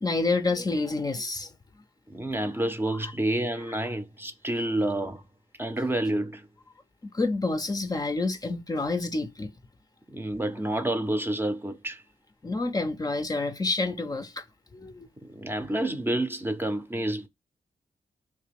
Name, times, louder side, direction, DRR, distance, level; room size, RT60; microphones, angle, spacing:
voice 1, 0.0-1.5 3.0-3.1 3.7-3.8 7.0-9.5 12.4-14.4 14.7-15.1, left 3 dB, 30° left, 0.5 m, -28 dB
voice 2, 2.1-5.2 5.6-6.5 10.1-12.0 15.2-17.3, right 1 dB, 15° right, 0.6 m, -29 dB
3.2 x 2.8 x 3.4 m
cardioid pair, 80°, 14 cm